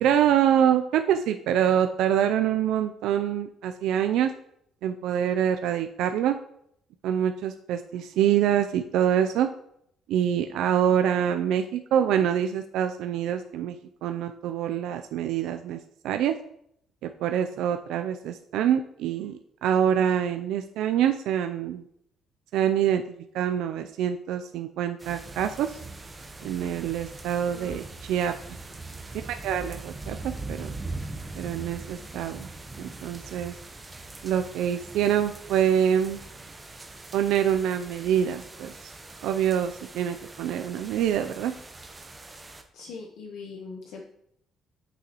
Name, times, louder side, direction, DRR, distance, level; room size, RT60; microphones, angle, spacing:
voice 1, 0.0-4.3 4.8-6.4 7.0-9.5 10.1-15.8 16.0-16.4 17.2-21.8 22.5-23.0 23.3-25.8 26.4-27.8 28.1-28.6 29.3-30.7 31.3-32.5 32.8-33.6 34.2-36.2 37.1-38.9 39.2-41.5, right 9 dB, 85° right, 7 dB, 0.4 m, -25 dB
sound 1, 25.0-42.6, right 3 dB, 15° right, 0.8 m, -41 dB
voice 2, 27.5-27.8 42.7-44.0, left 4 dB, 85° left, 0 dB, 1.0 m, -41 dB
8.5 x 6.2 x 3.0 m, 0.72 s
cardioid pair, 145°, 0 cm